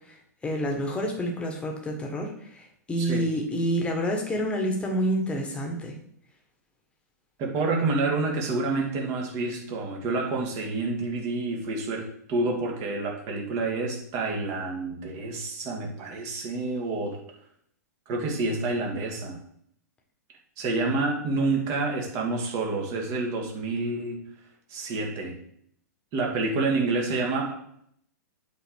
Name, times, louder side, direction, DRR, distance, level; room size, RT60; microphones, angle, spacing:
voice 1, 0.4-5.9, equal, 10° left, 1 dB, 1.5 m, -28 dB
voice 2, 3.0-3.3 7.4-17.2 18.1-19.4 20.6-24.2 24.7-25.4 26.1-27.5, right 3 dB, 35° right, 0 dB, 2.0 m, -28 dB
8.2 x 3.9 x 4.7 m, 0.69 s
figure-of-eight pair, 110°, 10 cm